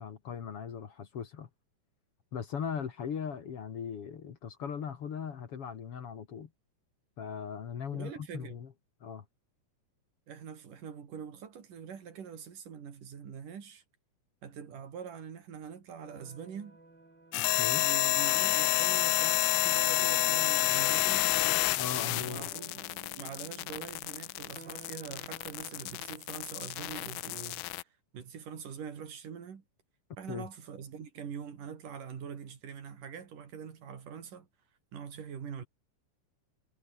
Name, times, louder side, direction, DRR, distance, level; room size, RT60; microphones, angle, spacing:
voice 1, 0.0-1.5 2.3-6.5 7.2-8.7 9.0-9.2 17.5-17.8 21.8-22.5 30.3-30.5, left 7 dB, 50° left, 2.4 m, -39 dB
voice 2, 7.9-8.6 10.3-13.8 14.4-16.8 17.8-21.2 22.0-22.8 23.2-27.6 28.1-29.6 30.2-34.5 34.9-35.7, right 7 dB, 75° right, 4.6 m, -44 dB
sound 1, 16.0-26.2, right 2 dB, 30° right, 7.6 m, -55 dB
sound 2, 17.3-27.8, left 21 dB, 80° left, 2.0 m, -29 dB
omnidirectional pair, 3.7 m